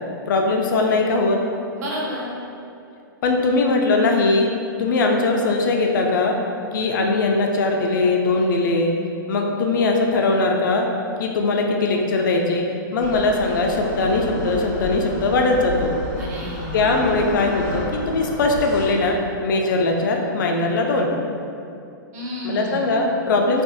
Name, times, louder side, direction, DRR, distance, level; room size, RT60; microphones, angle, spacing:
voice 1, 0.3-1.4 3.2-4.5 4.8-6.4 6.7-8.9 9.3-10.9 11.2-12.6 12.9-15.9 16.7-21.1 22.4-23.6, left 3 dB, 65° left, 2 dB, 0.4 m, -20 dB
voice 2, 1.8-2.3 16.1-17.1 22.1-22.9, equal, 50° right, -4 dB, 0.7 m, -31 dB
sound 1, 13.0-18.9, left 1 dB, 40° left, 1.0 m, -31 dB
3.4 x 2.6 x 2.3 m, 2.6 s
hypercardioid pair, 160°, 11 cm